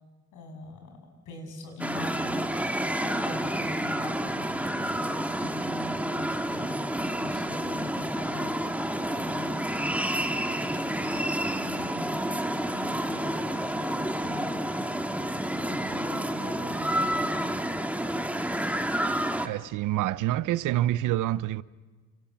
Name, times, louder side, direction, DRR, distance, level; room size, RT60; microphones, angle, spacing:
voice 1, 0.3-2.5 3.0-11.4 11.6-12.2 12.7-15.0 15.6-17.4, left 2 dB, 85° left, 7.4 m, -42 dB
sound 1, 1.8-19.5, right 1 dB, 5° right, 1.8 m, -29 dB
voice 2, 19.4-21.6, right 14 dB, 85° right, 0.8 m, -27 dB
29.0 x 28.5 x 7.3 m
cardioid pair, 90°, 30 cm